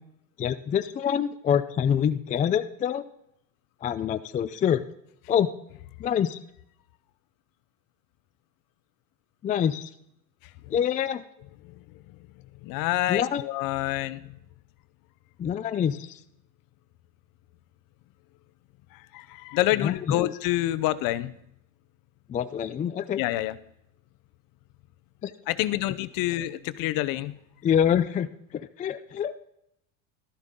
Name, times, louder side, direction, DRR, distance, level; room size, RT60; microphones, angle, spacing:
voice 1, 0.4-3.0 3.8-4.8 5.3-5.5 6.0-6.4 9.4-9.9 10.7-11.2 13.1-13.4 15.4-16.2 19.8-20.4 22.3-23.2 25.2-25.3 27.6-29.4, left 8 dB, 20° left, 10 dB, 0.4 m, -26 dB
voice 2, 12.6-14.2 19.1-21.3 23.2-23.5 25.5-27.4, left 16 dB, 55° left, 15 dB, 0.8 m, -27 dB
12.5 x 12.0 x 3.7 m, 0.76 s
supercardioid pair, 110°, 42 cm